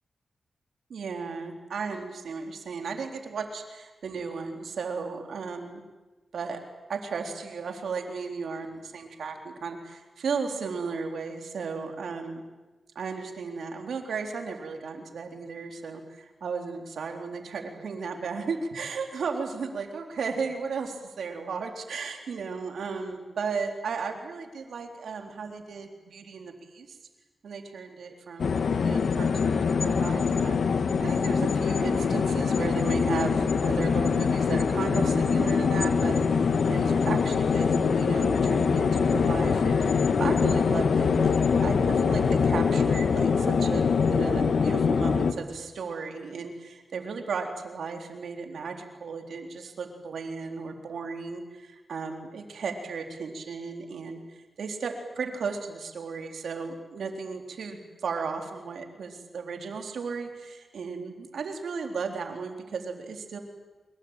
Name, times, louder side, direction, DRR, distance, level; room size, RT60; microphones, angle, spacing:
voice 1, 0.9-5.8 6.3-6.6 6.9-12.4 13.0-27.0 27.4-41.3 41.6-63.4, right 5 dB, 80° right, 4 dB, 3.8 m, -35 dB
sound 1, 28.4-45.3, left 5 dB, 75° left, 1.7 m, -24 dB
25.0 x 22.5 x 9.0 m, 1.2 s
cardioid pair, 65°, 0 cm